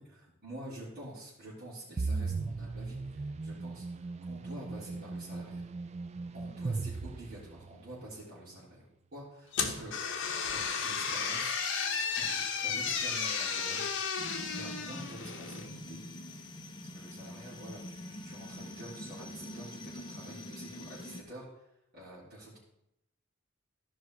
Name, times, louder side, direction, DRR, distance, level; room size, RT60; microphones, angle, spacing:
voice 1, 0.0-5.7 6.3-8.9 9.1-10.2 10.5-11.5 12.1-13.9 14.4-16.0 16.9-21.6 21.9-22.6, right 1 dB, 50° right, -11 dB, 3.6 m, -48 dB
sound 1, 2.0-7.9, right 3 dB, 30° right, 0.4 m, -37 dB
sound 2, 9.5-15.7, left 6 dB, 60° left, 1.1 m, -33 dB
sound 3, 14.2-21.2, left 1 dB, 20° left, 1.0 m, -45 dB
13.5 x 5.4 x 4.8 m, 0.82 s
head